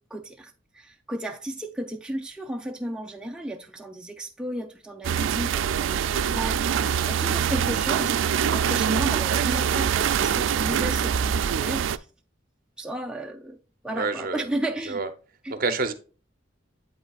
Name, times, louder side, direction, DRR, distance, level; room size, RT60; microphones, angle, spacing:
voice 1, 0.1-6.6 7.1-8.2 8.5-12.1 12.8-13.6 13.8-15.0 15.4-15.5, right 1 dB, 5° right, 0.4 m, -33 dB
sound 1, 5.0-12.0, right 8 dB, 80° right, 0.3 m, -24 dB
voice 2, 13.9-14.5 14.8-15.1 15.5-15.9, right 4 dB, 50° right, 0.7 m, -27 dB
8.1 x 5.5 x 2.3 m
head